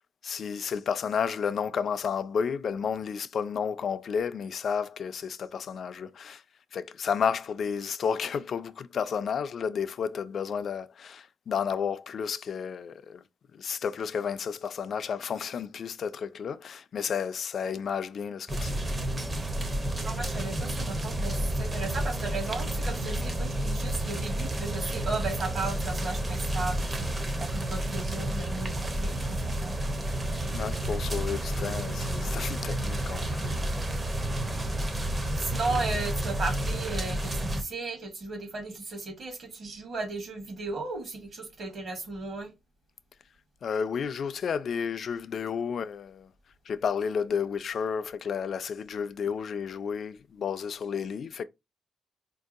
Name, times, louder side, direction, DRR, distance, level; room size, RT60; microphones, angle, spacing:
voice 1, 0.2-6.4 6.7-13.2 13.5-19.0 30.5-33.6 43.6-46.3 46.7-51.4, left 7 dB, 50° left, 0.3 m, -32 dB
sound 1, 18.5-37.6, right 1 dB, 20° right, 0.6 m, -30 dB
voice 2, 20.0-27.1 27.4-29.9 35.3-42.5, right 3 dB, 45° right, 1.1 m, -35 dB
4.4 x 2.6 x 2.4 m
wide cardioid pair, 160°, 0 cm